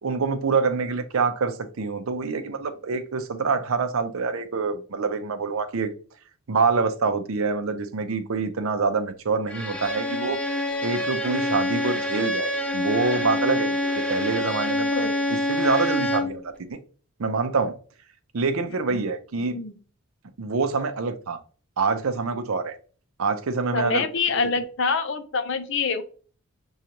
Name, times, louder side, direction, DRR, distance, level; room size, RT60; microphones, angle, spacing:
voice 1, 0.0-5.9 6.5-10.4 10.8-16.8 17.2-17.7 18.3-19.6 20.4-21.4 21.8-22.8 23.2-24.1, right 4 dB, 75° right, 9 dB, 0.6 m, -26 dB
Bowed string instrument, 9.5-16.4, left 1 dB, 5° left, 0.5 m, -26 dB
voice 2, 14.9-15.3 18.9-19.0 19.5-19.7 23.7-26.0, left 4 dB, 55° left, 9 dB, 0.6 m, -26 dB
6.3 x 2.4 x 2.8 m, 0.40 s
head